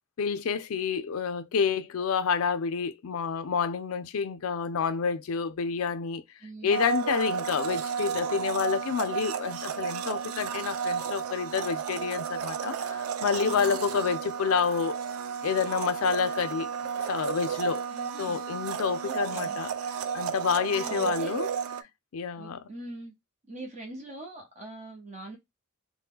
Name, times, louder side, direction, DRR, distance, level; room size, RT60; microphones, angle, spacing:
voice 1, 0.2-6.2 6.6-15.0 15.4-16.7 17.0-17.9 18.2-21.5 22.1-22.7, left 6 dB, 80° left, 0.4 m, -29 dB
voice 2, 6.4-6.8 13.4-13.8 17.9-18.4 19.0-19.6 20.6-21.4 22.4-23.1 23.5-25.4, right 2 dB, 35° right, 0.9 m, -42 dB
Domestic sounds home sounds, 6.7-21.8, right 7 dB, 85° right, 0.3 m, -33 dB
2.8 x 2.1 x 3.5 m
head